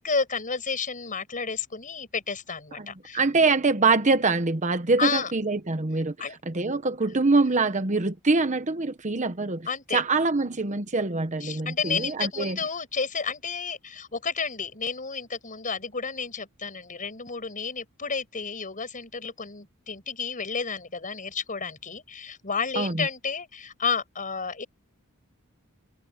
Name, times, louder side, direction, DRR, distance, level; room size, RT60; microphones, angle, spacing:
voice 1, 0.0-3.2 5.0-5.3 6.2-6.4 9.7-10.0 11.4-24.6, left 5 dB, 40° left, 5.9 m, -31 dB
voice 2, 3.1-6.1 6.5-9.7 9.9-12.6 22.7-23.1, right 3 dB, 35° right, 1.1 m, -24 dB
head